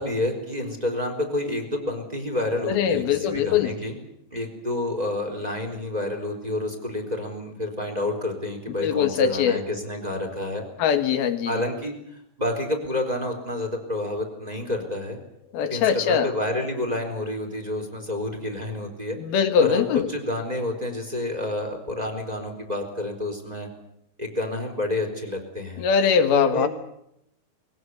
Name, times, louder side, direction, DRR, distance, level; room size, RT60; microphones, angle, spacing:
voice 1, 0.0-4.0 4.3-10.6 11.5-11.9 12.4-15.2 15.7-19.2 19.6-19.8 20.1-23.7 24.2-25.9 26.2-26.7, left 1 dB, 10° right, 3 dB, 4.0 m, -29 dB
voice 2, 2.7-3.8 8.8-9.6 10.8-11.6 15.5-16.3 19.2-20.1 25.8-26.7, left 7 dB, 90° left, 9 dB, 3.5 m, -22 dB
22.0 x 17.0 x 9.6 m, 0.77 s
omnidirectional pair, 4.2 m